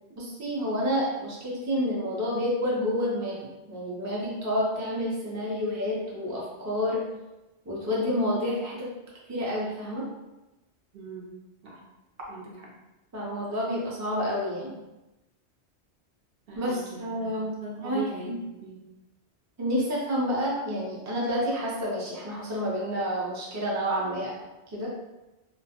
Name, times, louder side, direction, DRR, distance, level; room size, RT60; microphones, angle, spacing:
voice 1, 0.2-3.4 3.7-7.0 7.7-8.9 9.3-10.1 13.1-14.7 16.6-17.5 17.8-18.4 19.6-24.3 24.7-24.9, equal, 25° right, -5 dB, 0.4 m, -29 dB
voice 2, 10.9-11.3 11.6-11.8 12.3-12.7 16.5-18.8, right 3 dB, 65° right, -3 dB, 0.7 m, -41 dB
2.2 x 2.1 x 2.8 m, 1.0 s
omnidirectional pair, 1.1 m